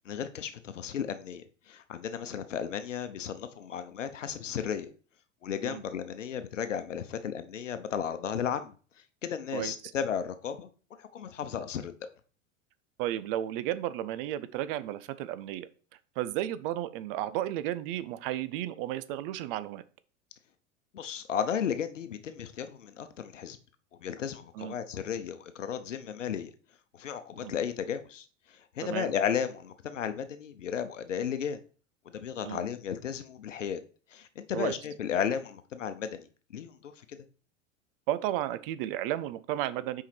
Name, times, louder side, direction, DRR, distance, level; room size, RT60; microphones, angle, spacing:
voice 1, 0.0-4.9 5.4-8.7 9.2-11.9 20.9-23.6 24.0-26.5 26.9-31.6 32.0-33.8 34.1-36.3 36.5-37.3, left 8 dB, 75° left, 0.9 m, -34 dB
voice 2, 13.0-15.7 16.2-19.8 24.6-24.8 27.4-27.5 28.8-29.1 32.4-32.6 34.5-34.8 38.1-40.0, right 13 dB, 45° right, 0.6 m, -33 dB
5.7 x 4.8 x 4.5 m
figure-of-eight pair, 85°, 38 cm